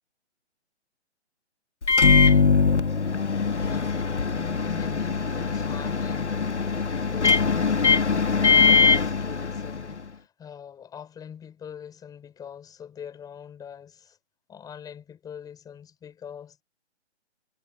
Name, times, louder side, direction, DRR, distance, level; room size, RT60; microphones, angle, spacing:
Microwave oven, 1.8-10.0, left 5 dB, 75° left, 1.7 m, -22 dB
voice 1, 3.5-4.0 4.3-8.0 8.4-14.2 14.5-16.6, left 8 dB, 10° left, 5.6 m, -43 dB
figure-of-eight pair, 135°, 35 cm